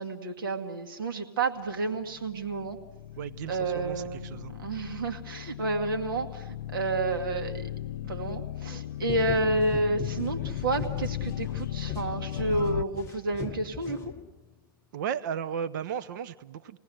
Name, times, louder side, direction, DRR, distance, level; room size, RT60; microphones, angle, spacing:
voice 1, 0.0-2.8 3.5-7.7 8.0-14.1, right 2 dB, 70° right, 4 dB, 2.3 m, -30 dB
sound 1, 2.0-12.8, left 12 dB, 65° left, 0.7 m, -37 dB
voice 2, 3.2-4.5 14.9-16.8, right 8 dB, 55° right, 15 dB, 0.9 m, -35 dB
sound 2, 9.0-14.6, left 7 dB, 25° left, 0.8 m, -40 dB
28.5 x 19.0 x 7.9 m, 1.3 s
hypercardioid pair, 125°, 12 cm